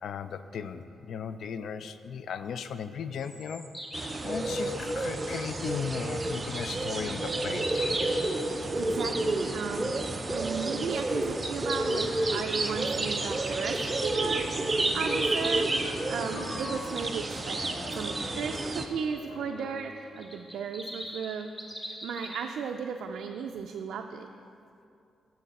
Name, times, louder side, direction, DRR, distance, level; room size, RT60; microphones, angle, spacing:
voice 1, 0.0-3.6 4.2-7.7, left 7 dB, 75° left, 11 dB, 0.3 m, -36 dB
sound 1, 3.1-4.2 7.1-8.4 13.2-15.8 20.2-22.4, equal, 10° left, 1.0 m, -40 dB
sound 2, 3.9-18.9, right 2 dB, 25° right, 0.5 m, -30 dB
voice 2, 8.7-9.9 10.3-15.7 16.1-17.6 17.9-21.5 21.8-24.3, right 6 dB, 85° right, 4 dB, 0.3 m, -35 dB
sound 3, 15.0-20.3, left 3 dB, 90° left, 0.8 m, -44 dB
9.1 x 6.4 x 4.1 m, 2.6 s
cardioid pair, 120°, 0 cm